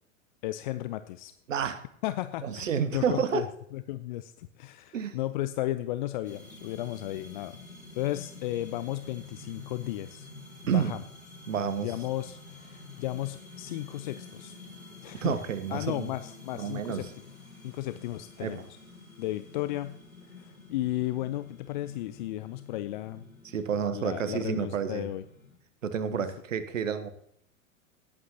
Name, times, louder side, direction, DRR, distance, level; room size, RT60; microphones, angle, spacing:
voice 1, 0.4-1.3 2.0-3.5 3.7-7.6 7.9-10.3 10.6-11.0 11.8-14.5 15.0-15.3 15.7-17.1 17.6-18.7 19.2-20.0 20.3-23.3 23.9-25.2 26.1-26.2, left 15 dB, 40° left, 12 dB, 0.4 m, -34 dB
voice 2, 1.5-1.8 2.4-3.5 4.9-5.2 10.7-10.9 11.5-11.9 15.2-16.1 16.5-17.1 18.4-18.6 23.4-25.1 25.8-27.1, right 7 dB, 70° right, 12 dB, 1.2 m, -30 dB
sound 1, 6.2-25.6, left 3 dB, 90° left, 2.1 m, -49 dB
18.5 x 8.6 x 2.9 m, 0.70 s
figure-of-eight pair, 90°, 41 cm